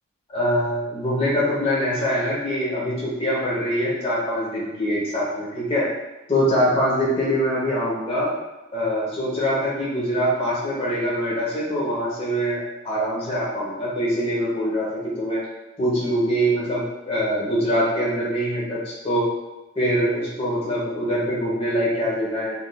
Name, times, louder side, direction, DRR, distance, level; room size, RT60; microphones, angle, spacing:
voice 1, 0.3-5.9 6.3-8.3 8.7-15.4 15.8-19.3 19.8-22.6, equal, 25° left, -7 dB, 0.9 m, -23 dB
3.6 x 2.6 x 2.2 m, 1.1 s
head